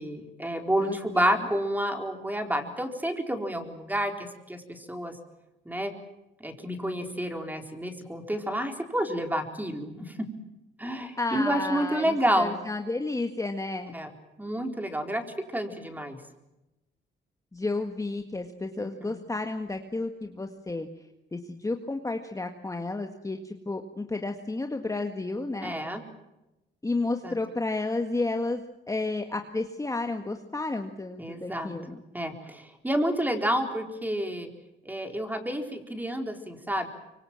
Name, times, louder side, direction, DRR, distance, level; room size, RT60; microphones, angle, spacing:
voice 1, 0.0-5.2 5.7-5.9 6.4-10.2 10.8-12.5 13.9-14.1 14.4-15.2 15.5-16.2 19.0-19.1 25.6-26.0 27.2-27.4 31.2-31.8 32.1-34.5 34.9-36.9, equal, 10° right, 4 dB, 4.2 m, -29 dB
voice 2, 0.8-1.4 11.2-13.9 17.5-20.9 21.3-25.7 26.8-32.0, left 2 dB, 15° left, 5 dB, 1.8 m, -32 dB
25.0 x 24.0 x 7.6 m, 0.97 s
cardioid pair, 90°, 20 cm